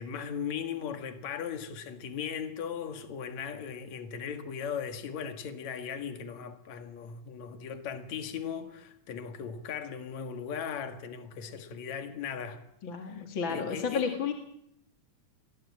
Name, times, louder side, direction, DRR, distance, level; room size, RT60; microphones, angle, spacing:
voice 1, 0.0-12.6 13.0-14.0, left 7 dB, 65° left, 3.2 m, -38 dB
voice 2, 12.8-14.3, left 6 dB, 45° left, 2.5 m, -32 dB
29.0 x 21.5 x 8.7 m
omnidirectional pair, 3.4 m